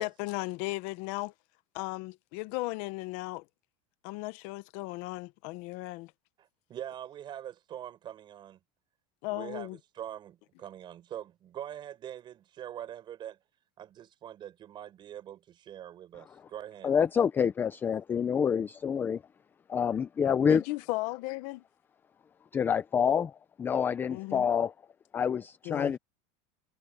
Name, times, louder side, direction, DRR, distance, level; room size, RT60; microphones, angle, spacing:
voice 1, 0.0-1.3 1.7-3.4 4.0-6.1 9.2-9.8 20.5-21.6 24.1-24.4 25.6-25.9, left 21 dB, 50° left, 0.7 m, -36 dB
voice 2, 6.4-8.6 9.3-13.4 13.8-16.9, right 11 dB, 25° right, 5.7 m, -43 dB
voice 3, 16.8-19.2 19.7-20.6 22.5-23.3 23.6-24.7 25.1-26.0, left 7 dB, 10° left, 0.3 m, -27 dB
supercardioid pair, 170°, 17 cm